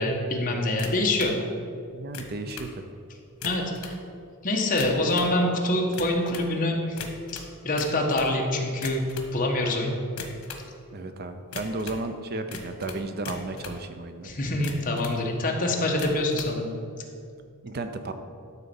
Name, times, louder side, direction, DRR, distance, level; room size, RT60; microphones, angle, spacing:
voice 1, 0.0-1.3 3.4-4.0 4.4-7.0 7.3-9.0 9.3-9.9 14.2-16.7, left 1 dB, 40° left, 0 dB, 1.3 m, -25 dB
sound 1, 0.8-1.4 2.0-2.7 3.3-4.0 4.6-5.3 5.9-6.5 7.0-8.3 8.7-9.3 10.1-10.7 11.5-12.0 12.5-13.8 14.5-15.2 15.9-16.5, left 4 dB, 85° left, 1.3 m, -39 dB
voice 2, 1.9-2.7 10.9-14.3 17.6-18.1, right 2 dB, 45° right, 8 dB, 0.6 m, -33 dB
12.5 x 4.2 x 7.0 m, 2.5 s
head